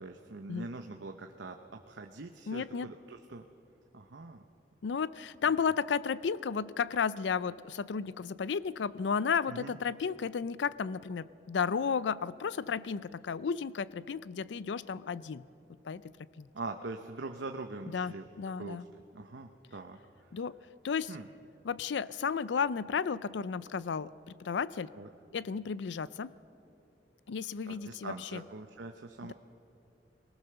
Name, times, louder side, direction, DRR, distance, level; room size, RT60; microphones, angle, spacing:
voice 1, 0.0-3.4 3.9-4.4 9.5-9.8 16.5-18.2 18.6-18.8 19.1-20.0 21.1-21.3 25.0-25.1 27.7-29.3, right 3 dB, 80° right, 4 dB, 0.8 m, -43 dB
voice 2, 2.5-2.9 4.8-15.4 15.8-16.0 16.4-16.5 17.9-18.8 20.3-20.6 20.8-21.2 21.6-24.9 25.3-26.3 27.3-28.4 29.2-29.3, left 6 dB, 75° left, 18 dB, 0.4 m, -33 dB
21.0 x 18.5 x 6.9 m, 2.6 s
head